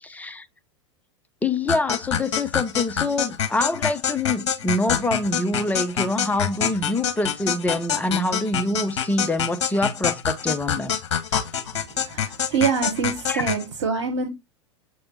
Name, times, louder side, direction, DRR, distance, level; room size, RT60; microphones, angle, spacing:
voice 1, 0.0-0.5 1.4-11.0 13.3-13.5, left 2 dB, 10° left, 0.7 m, -25 dB
sound 1, 1.7-13.7, left 8 dB, 65° left, 1.1 m, -26 dB
voice 2, 12.0-14.3, right 5 dB, 70° right, 1.3 m, -25 dB
7.7 x 3.5 x 4.1 m
figure-of-eight pair, 85°, 15 cm